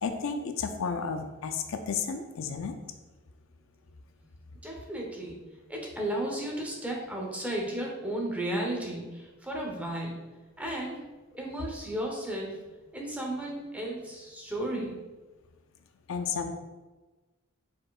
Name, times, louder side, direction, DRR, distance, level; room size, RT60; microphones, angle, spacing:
voice 1, 0.0-2.8 16.1-16.5, left 5 dB, 70° left, 6 dB, 0.4 m, -32 dB
voice 2, 4.6-5.4 5.7-10.2 10.6-11.0 11.3-12.6 12.9-14.9, right 1 dB, 5° right, -1 dB, 0.8 m, -34 dB
4.5 x 4.3 x 2.4 m, 1.2 s
head